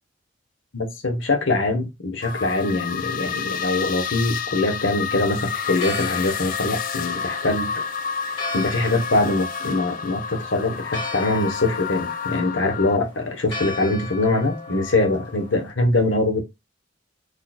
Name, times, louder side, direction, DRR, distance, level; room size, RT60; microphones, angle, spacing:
voice 1, 0.7-7.8 8.5-16.4, left 2 dB, 80° left, 1.0 m, -23 dB
sound 1, 2.2-13.0, left 7 dB, 45° left, 0.4 m, -30 dB
Church bell, 5.5-15.7, left 3 dB, 25° left, 1.6 m, -36 dB
3.9 x 3.2 x 2.3 m
head